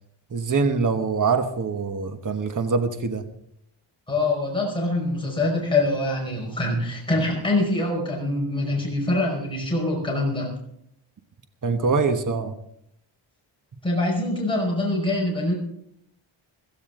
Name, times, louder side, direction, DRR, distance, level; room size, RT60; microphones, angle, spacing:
voice 1, 0.3-3.2 11.6-12.5, right 4 dB, 40° right, 7 dB, 1.3 m, -24 dB
voice 2, 4.1-10.5 13.8-15.5, left 2 dB, 10° left, -3 dB, 5.1 m, -24 dB
17.0 x 15.0 x 3.8 m, 0.74 s
wide cardioid pair, 120°, 49 cm